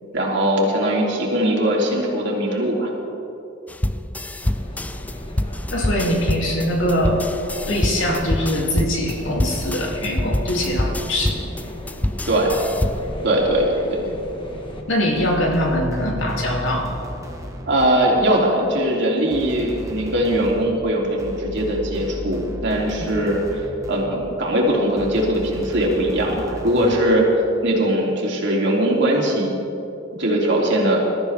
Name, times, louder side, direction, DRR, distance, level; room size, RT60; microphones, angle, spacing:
voice 1, 0.1-2.9 12.3-12.6 13.2-14.1 17.7-23.6 23.9-27.3 27.6-29.5 30.2-31.1, right 1 dB, 65° right, -2 dB, 3.0 m, -20 dB
sound 1, 3.7-13.2, left 1 dB, 10° left, 0.4 m, -26 dB
sound 2, 4.4-14.8, equal, 25° left, 1.5 m, -36 dB
voice 2, 5.7-7.2 7.7-11.4 14.9-16.9 23.0-23.1, equal, 75° left, -1 dB, 2.7 m, -22 dB
sound 3, 15.2-18.4 19.3-24.4 25.0-27.2, equal, 15° right, 1.3 m, -35 dB
21.5 x 13.5 x 3.5 m, 2.8 s
head